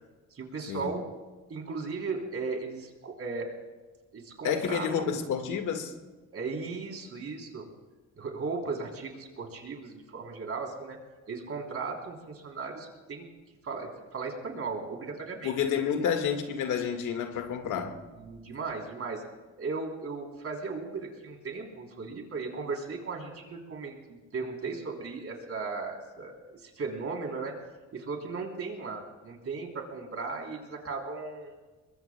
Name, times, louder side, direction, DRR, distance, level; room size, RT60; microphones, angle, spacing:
voice 1, 0.3-1.1 1.5-3.5 4.1-5.1 6.3-7.7 8.2-11.0 11.3-13.2 13.6-15.6 18.2-19.2 19.6-27.5 27.9-31.5, right 4 dB, 50° right, 3.4 m, -36 dB
voice 2, 4.4-5.9 15.4-18.0, left 7 dB, 85° left, 1.8 m, -29 dB
23.5 x 21.5 x 2.2 m
cardioid pair, 90°, 30 cm